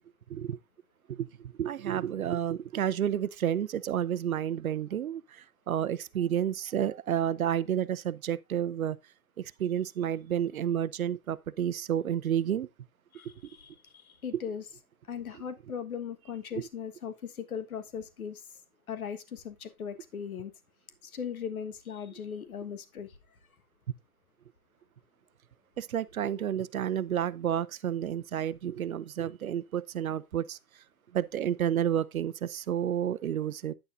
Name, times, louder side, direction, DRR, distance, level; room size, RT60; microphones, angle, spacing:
voice 1, 1.1-9.0 9.4-12.7 25.8-30.6 31.1-33.7, right 10 dB, 65° right, 0.8 m, -30 dB
voice 2, 13.1-14.7 15.1-18.6 18.9-20.5 21.0-23.2, left 7 dB, 70° left, 1.6 m, -39 dB
9.9 x 8.7 x 2.6 m
figure-of-eight pair, 120°, 45 cm